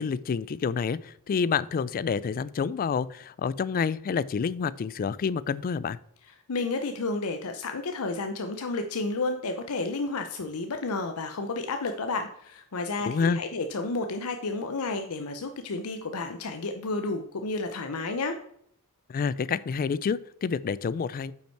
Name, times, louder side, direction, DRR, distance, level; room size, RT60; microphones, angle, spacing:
voice 1, 0.0-6.0 13.1-13.4 19.1-21.3, left 6 dB, 40° left, 19 dB, 0.3 m, -28 dB
voice 2, 6.5-18.4, left 3 dB, 75° left, 6 dB, 0.6 m, -31 dB
8.8 x 5.6 x 4.6 m, 0.69 s
head